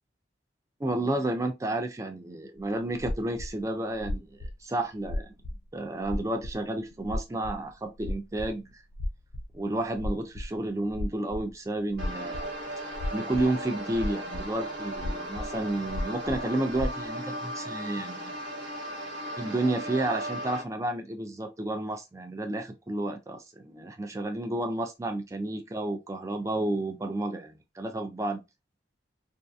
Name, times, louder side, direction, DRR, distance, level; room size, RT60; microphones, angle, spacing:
voice 1, 0.8-5.3 5.7-8.8 9.5-12.5 13.1-18.3 19.4-28.4, right 1 dB, 15° right, 0.3 m, -31 dB
sound 1, 2.6-2.7 2.9-3.5 3.9-4.5 5.0-5.6 6.0-6.2 6.4-6.5 6.9-7.6 8.0-8.5 8.9-10.6 10.8-11.5 11.9-12.5 12.9-13.5 13.9-17.0, left 1 dB, 60° left, 0.4 m, -33 dB
sound 2, 12.0-20.6, equal, 65° right, 0.7 m, -36 dB
2.7 x 2.3 x 2.2 m
head